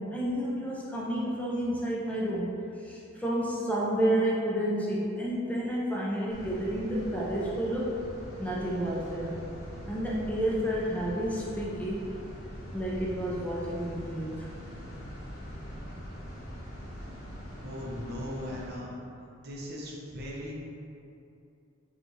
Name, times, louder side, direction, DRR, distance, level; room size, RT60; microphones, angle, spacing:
voice 1, 0.0-2.5 2.8-7.9 8.4-9.4 9.9-12.0 12.7-14.5, right 1 dB, 5° left, -6 dB, 0.4 m, -30 dB
sound 1, 6.3-18.7, equal, 80° left, 1.1 m, -43 dB
voice 2, 17.6-19.0 19.4-20.5, left 1 dB, 50° right, -4 dB, 0.7 m, -38 dB
5.0 x 2.4 x 3.1 m, 2.6 s
head